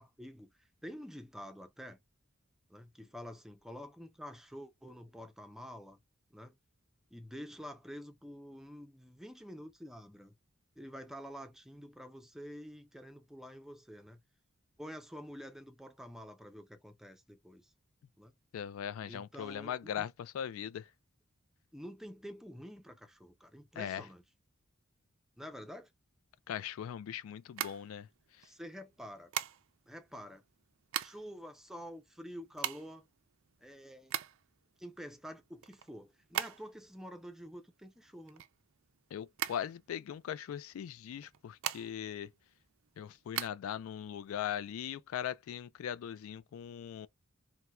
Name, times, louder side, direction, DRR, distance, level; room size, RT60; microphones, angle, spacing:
voice 1, 0.0-2.0 2.7-6.0 6.3-6.6 7.1-10.3 10.8-14.2 14.8-17.7 18.2-18.3 19.1-20.1 21.7-24.2 25.4-25.9 28.4-29.3 29.9-30.4 31.0-33.1 33.6-34.1 34.8-38.4, equal, ahead, 0.4 m, -48 dB
voice 2, 18.5-20.9 23.8-24.0 26.5-28.1 39.1-42.3 43.0-47.1, left 9 dB, 80° left, 0.3 m, -40 dB
sound 1, 27.4-28.5 29.3-29.9 30.6-31.4 31.7-31.8 32.0-34.6 35.0-36.9 37.2-39.0 39.3-40.3 41.1-42.2 42.5-43.5, right 11 dB, 70° right, 0.4 m, -39 dB
4.3 x 2.1 x 2.2 m
head